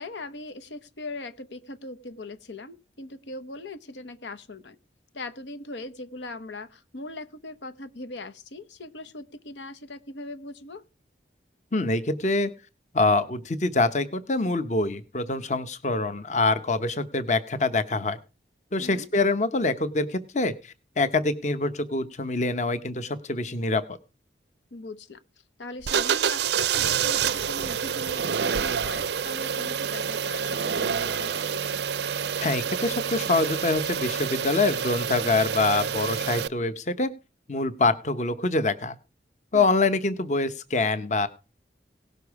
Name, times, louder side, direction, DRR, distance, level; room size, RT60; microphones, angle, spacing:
voice 1, 0.0-4.8 5.1-10.8 18.8-19.1 24.7-25.2 25.6-31.6 39.5-39.7, left 2 dB, 85° left, 11 dB, 1.0 m, -40 dB
voice 2, 11.7-12.5 12.9-18.2 18.7-24.0 32.4-37.1 37.5-39.0 39.5-41.3, left 3 dB, 40° left, 12 dB, 0.9 m, -25 dB
sound 1, 25.8-36.5, right 7 dB, 70° right, 0.5 m, -28 dB
17.5 x 6.8 x 4.7 m, 0.33 s
head